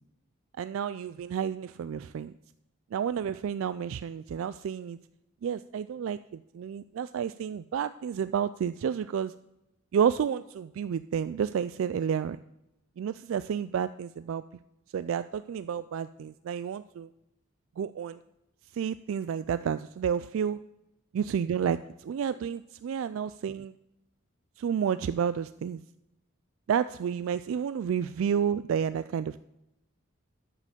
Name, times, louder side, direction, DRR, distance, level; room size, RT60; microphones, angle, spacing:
voice 1, 0.6-2.3 2.9-5.0 5.4-9.3 9.9-12.4 13.0-14.4 14.9-17.1 17.8-18.2 18.7-20.6 21.1-23.7 24.6-25.8 26.7-29.4, right 8 dB, 75° right, 14 dB, 0.3 m, -30 dB
9.7 x 7.5 x 6.6 m, 0.90 s
head